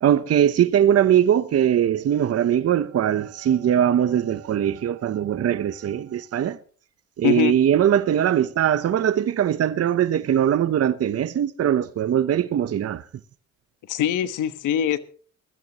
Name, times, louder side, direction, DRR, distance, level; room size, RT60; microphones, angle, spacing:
voice 1, 0.0-6.6 7.2-13.0, right 10 dB, 55° right, 0.9 m, -21 dB
voice 2, 7.2-7.5 13.9-15.0, left 10 dB, 85° left, 1.3 m, -22 dB
22.0 x 14.0 x 3.0 m
cardioid pair, 90°, 30 cm